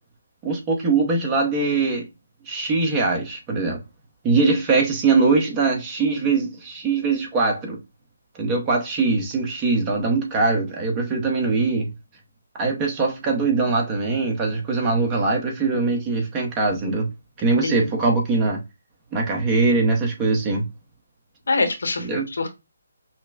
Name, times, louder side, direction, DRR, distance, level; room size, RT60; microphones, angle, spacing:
voice 1, 0.4-2.1 2.5-3.8 4.2-7.8 8.3-11.9 12.6-17.1 17.4-18.6 19.1-20.6 22.0-22.3, right 3 dB, 20° right, 0.9 m, -22 dB
voice 2, 21.5-22.5, left 3 dB, 70° left, 1.0 m, -24 dB
5.6 x 2.1 x 2.4 m
figure-of-eight pair, 150°, 0 cm